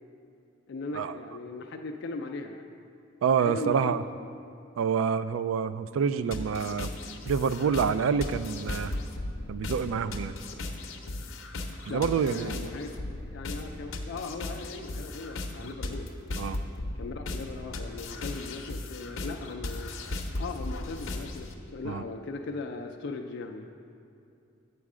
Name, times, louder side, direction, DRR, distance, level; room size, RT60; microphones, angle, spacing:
voice 1, 0.7-2.7 3.4-4.0 11.9-12.9 13.3-16.1 17.0-19.9 20.4-23.7, left 3 dB, 60° left, 3 dB, 0.4 m, -38 dB
voice 2, 3.2-4.0 4.8-6.9 7.3-8.9 9.5-10.4 11.9-12.6 16.4-16.6 21.9-22.0, right 6 dB, 85° right, 13 dB, 0.3 m, -27 dB
sound 1, 6.3-21.5, left 2 dB, 90° left, 0.7 m, -37 dB
8.2 x 6.3 x 4.9 m, 2.5 s
head